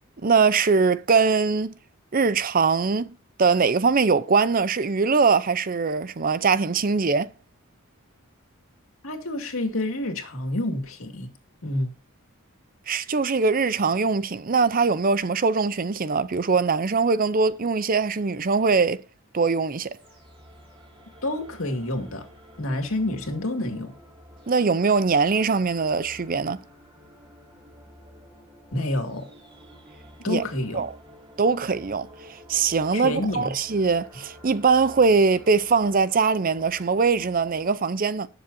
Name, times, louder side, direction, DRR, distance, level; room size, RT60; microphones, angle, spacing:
voice 1, 0.2-1.7 2.1-3.1 3.4-7.3 12.9-19.0 19.3-19.9 24.5-26.6 30.3-30.4 30.7-30.9 31.4-32.1 32.5-38.3, right 4 dB, 40° right, 0.6 m, -22 dB
voice 2, 9.0-11.3 11.6-11.9 21.2-22.3 22.6-23.9 28.7-29.3 30.2-30.8 32.9-33.6, left 1 dB, 75° left, 2.4 m, -28 dB
sound 1, 19.9-37.7, equal, 25° right, 3.4 m, -50 dB
19.0 x 7.0 x 2.7 m
head